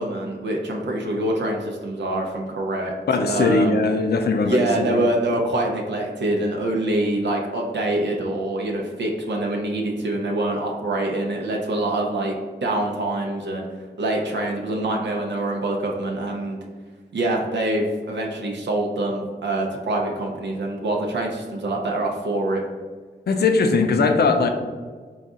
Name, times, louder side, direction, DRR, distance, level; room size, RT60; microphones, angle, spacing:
voice 1, 0.0-2.9 3.3-3.7 4.4-12.3 12.6-13.6 14.0-16.6 17.1-22.6, right 1 dB, 85° right, 0 dB, 0.5 m, -25 dB
voice 2, 3.1-5.0 23.3-24.5, left 3 dB, 65° left, 6 dB, 0.4 m, -20 dB
3.9 x 2.4 x 3.6 m, 1.5 s
wide cardioid pair, 65°, 18 cm